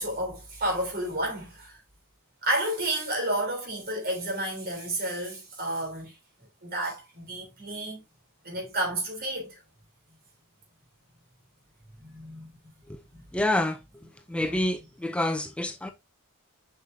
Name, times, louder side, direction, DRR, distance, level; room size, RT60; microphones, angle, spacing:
voice 1, 0.0-1.8 2.4-6.1 6.6-8.0 8.4-9.6 12.0-12.5 13.1-13.2 14.3-14.6, right 1 dB, 45° right, 3.3 m, -31 dB
voice 2, 13.3-13.8 14.3-15.9, left 1 dB, 5° left, 0.4 m, -27 dB
7.3 x 5.8 x 2.6 m
head